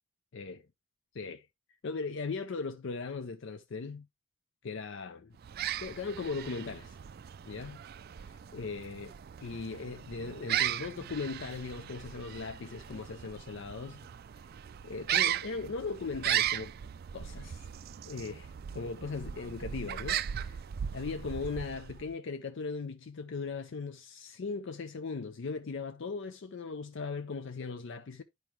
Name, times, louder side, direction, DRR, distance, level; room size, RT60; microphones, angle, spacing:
voice 1, 0.3-0.7 1.1-1.5 1.8-4.1 4.6-5.4 5.8-7.0 7.5-7.8 8.2-9.2 9.4-14.0 14.4-14.5 14.8-16.7 17.1-17.7 18.0-20.6 20.9-28.2, left 4 dB, 55° left, 0.5 m, -38 dB
sound 1, 5.4-22.1, right 11 dB, 45° right, 0.3 m, -37 dB
11.0 x 4.7 x 3.0 m
head